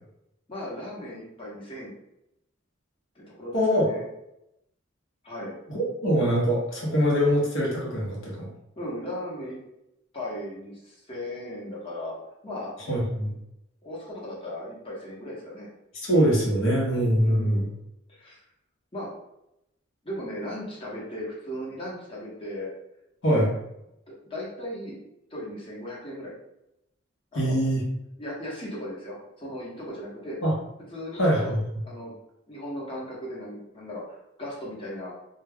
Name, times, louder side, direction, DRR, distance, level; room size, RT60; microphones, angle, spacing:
voice 1, 0.5-1.9 3.1-4.0 5.2-5.6 8.8-9.6 10.1-12.2 12.4-12.7 13.8-15.7 17.2-17.7 18.1-18.4 18.9-19.1 20.0-22.7 24.1-25.0 25.3-26.3 27.3-27.6 28.2-30.4 30.9-31.5 31.9-32.1 32.5-35.1, left 1 dB, 25° left, -5 dB, 0.9 m, -37 dB
voice 2, 3.5-3.9 5.7-8.5 12.9-13.3 16.0-17.7 23.2-23.5 27.3-27.8 30.4-30.5 31.2-31.6, equal, 70° left, -3 dB, 0.9 m, -23 dB
2.2 x 2.2 x 3.4 m, 0.85 s
head